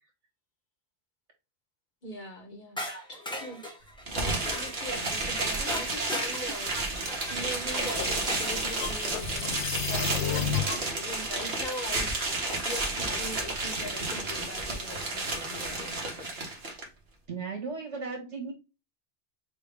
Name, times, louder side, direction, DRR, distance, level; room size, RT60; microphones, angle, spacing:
voice 1, 2.0-3.6 4.1-6.7 7.3-16.3, left 1 dB, 45° left, 1.0 m, -41 dB
sound 1, 2.8-8.6 10.6-10.7 11.7-12.1, left 1 dB, 5° left, 0.7 m, -39 dB
sound 2, 4.1-16.8, right 2 dB, 60° right, 1.5 m, -31 dB
voice 2, 4.9-6.2 6.5-7.2 10.5-10.6 17.3-18.5, right 4 dB, 80° right, 2.0 m, -39 dB
sound 3, 7.4-10.9, left 8 dB, 75° left, 0.8 m, -33 dB
6.4 x 2.2 x 3.4 m
omnidirectional pair, 1.2 m